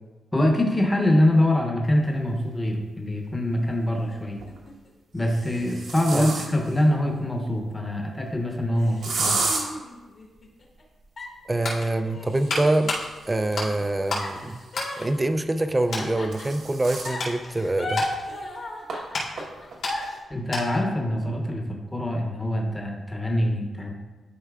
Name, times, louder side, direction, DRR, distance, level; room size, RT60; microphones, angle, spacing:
voice 1, 0.3-4.4 5.1-9.4 20.3-24.0, left 1 dB, 10° left, 0 dB, 0.8 m, -24 dB
sound 1, 2.6-2.7 4.2-4.6 5.2-6.8 9.0-9.6 12.2-14.8 15.9-17.2 17.7-17.8 18.1-18.2 18.9-19.0 19.4-19.8, right 3 dB, 80° right, 1.1 m, -32 dB
sound 2, 3.6-4.9 5.6-7.8 8.3-8.4 8.8-10.8 11.2-13.2 14.2-16.7 17.0-20.2, left 2 dB, 45° left, 1.3 m, -37 dB
sound 3, 11.2-14.3 14.7-15.6 15.9-16.1 16.7-20.9 21.2-21.4, left 2 dB, 75° left, 2.2 m, -33 dB
voice 2, 11.5-12.9 13.3-14.6 15.0-18.0, right 2 dB, 15° right, 9 dB, 0.3 m, -25 dB
11.5 x 4.4 x 2.3 m, 1.2 s
wide cardioid pair, 155°, 0 cm